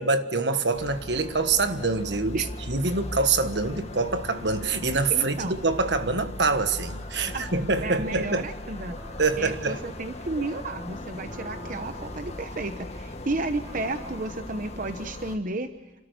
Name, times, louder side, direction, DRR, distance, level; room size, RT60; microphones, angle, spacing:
voice 1, 0.0-8.5 9.2-9.8, right 3 dB, 70° right, 1.5 m, -25 dB
sound 1, 0.7-15.4, left 1 dB, 40° left, 1.8 m, -39 dB
sound 2, 4.2-14.9, equal, 30° right, 4.4 m, -48 dB
voice 2, 5.1-5.5 7.3-9.0 9.4-15.7, right 2 dB, 50° right, 0.9 m, -32 dB
28.5 x 13.5 x 8.0 m
head